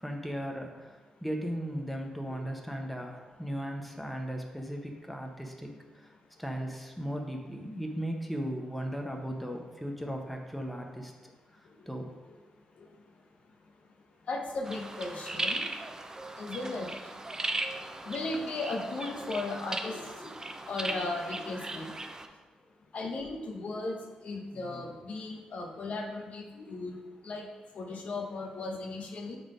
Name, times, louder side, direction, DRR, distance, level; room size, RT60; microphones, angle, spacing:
voice 1, 0.0-0.9 1.2-5.7 6.4-11.1 11.9-12.1 24.5-24.8, equal, ahead, 2 dB, 1.0 m, -36 dB
voice 2, 14.3-15.6 16.4-16.9 18.0-20.3 20.7-21.9 22.9-24.0 24.2-27.0 27.2-27.5 27.7-29.4, left 2 dB, 65° left, 1 dB, 0.9 m, -36 dB
sound 1, 14.6-22.3, right 2 dB, 25° right, 0.6 m, -37 dB
6.2 x 3.8 x 5.0 m, 1.2 s
cardioid pair, 65°, 3 cm